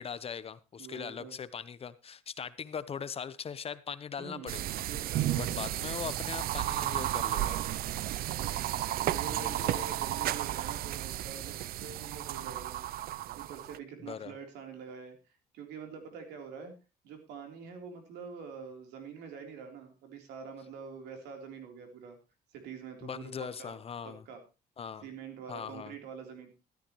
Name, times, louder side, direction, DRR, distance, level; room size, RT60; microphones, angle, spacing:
voice 1, 0.0-4.6 5.4-7.8 9.3-9.9 14.0-14.3 23.0-24.2 24.8-25.1 25.5-26.0, left 7 dB, 35° left, 15 dB, 0.9 m, -40 dB
voice 2, 0.8-1.4 4.2-4.6 4.9-5.7 6.9-7.2 9.1-12.8 13.4-15.2 15.5-16.8 17.0-22.2 22.5-23.8 24.0-24.4 25.0-26.5, right 6 dB, 85° right, 4 dB, 3.7 m, -45 dB
sound 1, 4.5-13.8, right 13 dB, 65° right, 0.5 m, -33 dB
13.5 x 13.0 x 3.1 m, 0.30 s
cardioid pair, 110°, 17 cm